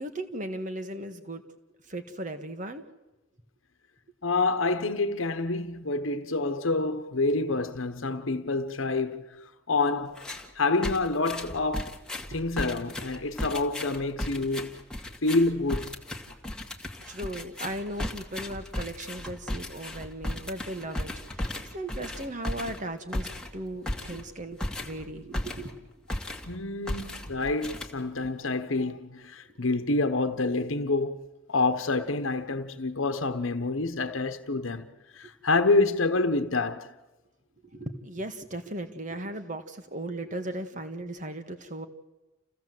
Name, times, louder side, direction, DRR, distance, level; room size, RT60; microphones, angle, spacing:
voice 1, 0.0-1.4 1.9-2.8 17.1-25.8 37.7-41.9, right 1 dB, 40° right, 1.7 m, -37 dB
voice 2, 4.2-9.4 9.7-10.2 10.6-11.9 12.3-14.7 15.2-15.9 26.5-31.2 31.5-34.9 35.1-36.9, left 3 dB, 80° left, 1.2 m, -27 dB
sound 1, 10.1-10.5 10.8-25.8 26.1-26.6 26.9-28.3, left 1 dB, 5° left, 1.9 m, -36 dB
29.0 x 16.0 x 7.8 m
head